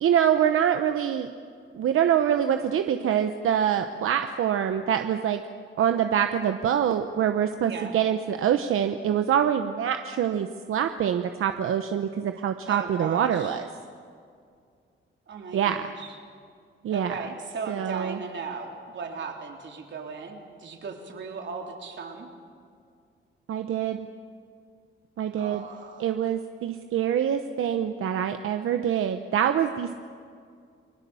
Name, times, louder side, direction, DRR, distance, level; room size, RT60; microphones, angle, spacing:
voice 1, 0.0-1.3 1.7-5.4 5.8-13.7 15.5-15.8 16.8-17.1 17.7-18.2 23.5-24.0 25.2-25.6 26.0-30.0, right 9 dB, 85° right, 7 dB, 0.9 m, -25 dB
voice 2, 7.6-8.0 12.7-13.6 15.3-16.2 16.9-22.3 25.3-26.1, right 5 dB, 60° right, 2 dB, 3.6 m, -37 dB
29.5 x 21.5 x 7.1 m, 2.3 s
wide cardioid pair, 140°, 21 cm